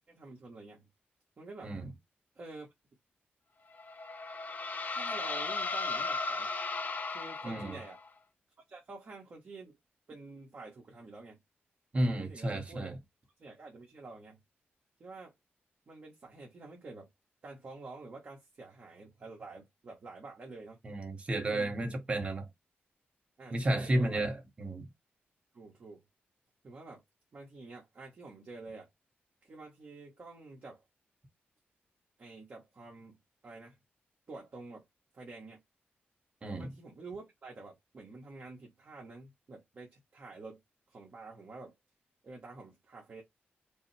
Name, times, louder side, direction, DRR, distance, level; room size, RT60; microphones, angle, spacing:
voice 1, 0.1-0.9 1.4-1.7 2.3-2.7 4.9-6.5 7.1-8.0 8.7-9.8 10.1-11.4 12.2-12.9 13.4-14.4 15.0-15.3 15.9-17.1 17.4-20.8 21.4-21.7 23.4-24.2 25.5-26.0 26.6-27.0 27.3-28.9 29.4-30.8 32.2-33.2 33.4-33.8 34.3-34.8 35.1-35.6 36.6-40.6 40.9-41.7 42.2-43.2, right 3 dB, 50° right, 1.4 m, -48 dB
sound 1, 3.7-8.1, left 3 dB, 45° left, 0.7 m, -36 dB
voice 2, 7.4-7.8 11.9-13.0 20.8-22.5 23.5-24.9 36.4-36.7, right 1 dB, 30° right, 1.3 m, -32 dB
5.2 x 2.1 x 3.3 m
wide cardioid pair, 120°, 4 cm